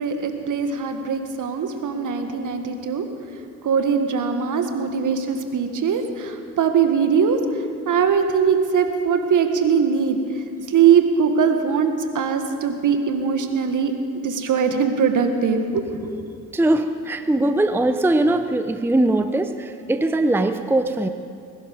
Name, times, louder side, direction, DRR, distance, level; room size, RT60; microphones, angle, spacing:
voice 1, 0.0-3.0 3.6-7.4 7.9-10.2 10.7-13.9 14.2-16.1, right 6 dB, 55° right, 6 dB, 1.8 m, -21 dB
voice 2, 16.5-21.1, right 1 dB, 5° right, 9 dB, 0.7 m, -21 dB
21.0 x 11.5 x 5.3 m, 2.5 s
hypercardioid pair, 60°, 37 cm